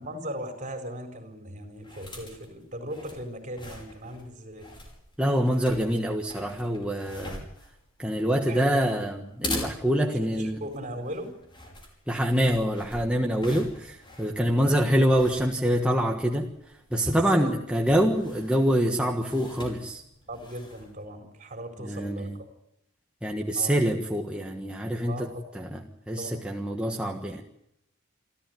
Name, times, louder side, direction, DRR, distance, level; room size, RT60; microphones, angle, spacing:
voice 1, 0.0-4.7 8.4-8.9 10.0-11.3 14.5-14.7 17.3-17.5 20.3-22.3 23.5-23.8 25.1-25.5 26.2-26.4, equal, 35° right, 5 dB, 4.4 m, -38 dB
sound 1, 1.7-21.1, left 1 dB, 25° left, 5.6 m, -43 dB
voice 2, 5.2-7.4 8.0-10.6 12.1-16.5 16.9-20.0 21.8-22.4 23.2-25.8 26.1-27.4, equal, 5° right, 0 dB, 1.5 m, -25 dB
28.0 x 13.5 x 9.4 m, 0.80 s
head